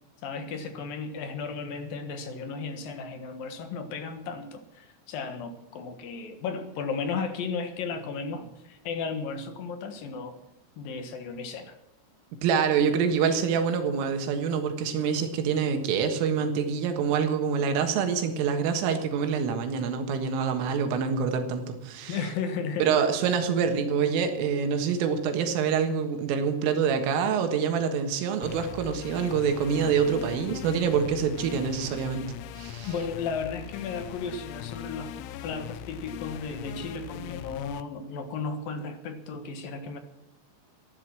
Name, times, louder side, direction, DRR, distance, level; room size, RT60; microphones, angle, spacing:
voice 1, 0.2-10.4 10.8-11.8 22.1-23.0 32.9-35.1 35.4-40.0, left 5 dB, 65° left, 8 dB, 2.6 m, -34 dB
voice 2, 12.4-22.2 22.8-32.2 32.6-32.9, right 6 dB, 85° right, 6 dB, 4.1 m, -26 dB
sound 1, 28.4-37.8, left 11 dB, 85° left, 3.1 m, -40 dB
15.0 x 11.5 x 7.5 m, 0.88 s
omnidirectional pair, 5.6 m